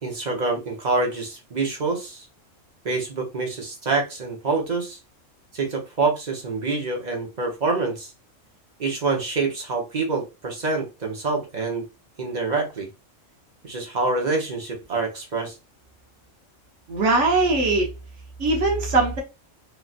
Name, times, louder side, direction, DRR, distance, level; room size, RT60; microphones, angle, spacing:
voice 1, 0.0-2.3 2.8-5.0 5.5-8.1 8.8-11.8 12.2-12.9 13.6-15.5, right 3 dB, 40° right, 0.9 m, -26 dB
voice 2, 16.9-17.9 18.4-19.2, right 3 dB, 65° right, 1.2 m, -20 dB
3.2 x 2.6 x 2.4 m
omnidirectional pair, 1.3 m